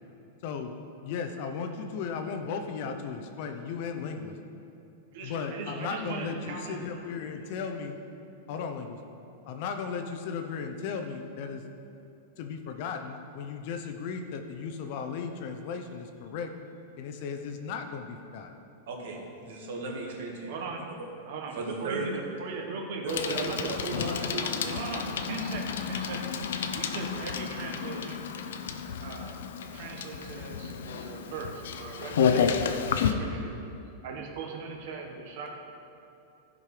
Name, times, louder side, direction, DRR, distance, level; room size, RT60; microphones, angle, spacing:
voice 1, 0.4-0.7 1.0-4.3 5.2-8.0 8.5-9.0 9.5-11.6 12.4-16.5 17.0-18.5, left 6 dB, 40° left, 6 dB, 0.7 m, -36 dB
voice 2, 5.1-6.8 20.5-20.9 21.2-23.7 24.4-26.4 26.7-28.3 29.0-29.4 29.7-33.5 34.0-35.5, right 4 dB, 45° right, 1 dB, 1.4 m, -39 dB
voice 3, 18.9-20.6 21.5-22.1 23.0-24.9, right 3 dB, 65° right, -1 dB, 2.0 m, -35 dB
Bicycle, 23.1-33.1, left 7 dB, 85° left, 0.6 m, -31 dB
15.5 x 5.3 x 4.9 m, 2.7 s
supercardioid pair, 175°, 0 cm